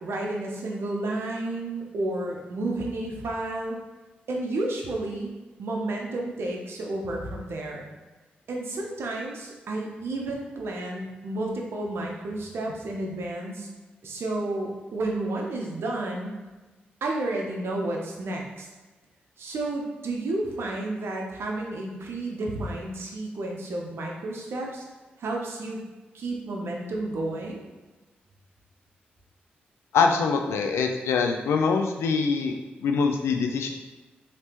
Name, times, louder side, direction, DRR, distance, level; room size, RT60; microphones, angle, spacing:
voice 1, 0.0-3.8 4.3-5.3 5.6-7.9 8.5-13.7 14.0-16.3 17.0-18.7 19.4-24.8 25.2-25.8 26.1-27.6, right 2 dB, 65° right, 0 dB, 0.7 m, -31 dB
voice 2, 29.9-32.5 32.8-33.7, left 5 dB, 80° left, 4 dB, 0.4 m, -24 dB
3.3 x 2.9 x 2.9 m, 1.2 s
supercardioid pair, 40°, 4 cm